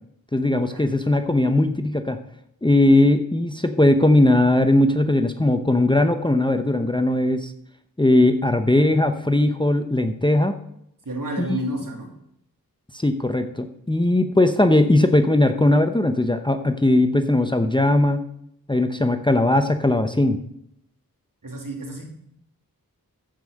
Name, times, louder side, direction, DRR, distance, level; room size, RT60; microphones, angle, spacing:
voice 1, 0.3-2.2 2.6-7.5 8.0-10.5 11.4-11.6 12.9-18.3 18.7-20.4, left 1 dB, 15° left, 8 dB, 0.8 m, -19 dB
voice 2, 11.0-12.1 21.4-22.0, right 1 dB, 60° right, 1 dB, 3.0 m, -30 dB
14.5 x 5.5 x 6.5 m, 0.74 s
wide cardioid pair, 60°, 37 cm